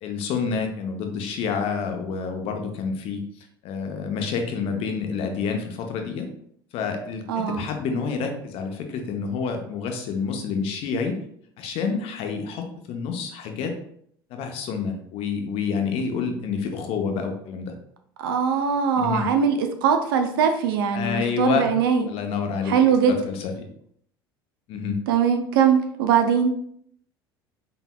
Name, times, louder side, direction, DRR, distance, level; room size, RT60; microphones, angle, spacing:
voice 1, 0.0-6.3 6.7-11.2 11.6-13.8 14.3-17.7 19.0-19.3 20.9-21.7 22.1-22.9 23.3-23.7 24.7-25.0, left 5 dB, 50° left, 4 dB, 0.7 m, -28 dB
voice 2, 7.3-7.7 18.2-22.0 22.7-23.2 25.1-26.5, right 7 dB, 65° right, 6 dB, 0.4 m, -21 dB
3.8 x 3.8 x 2.2 m, 0.67 s
figure-of-eight pair, 65°, 13 cm